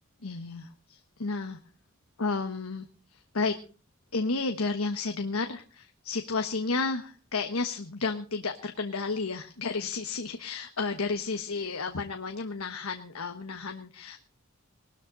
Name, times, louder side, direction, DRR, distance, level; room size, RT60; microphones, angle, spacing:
voice 1, 0.2-1.6 2.2-3.6 4.1-14.2, left 4 dB, 85° left, 6 dB, 1.3 m, -32 dB
20.0 x 13.0 x 4.0 m, 0.37 s
head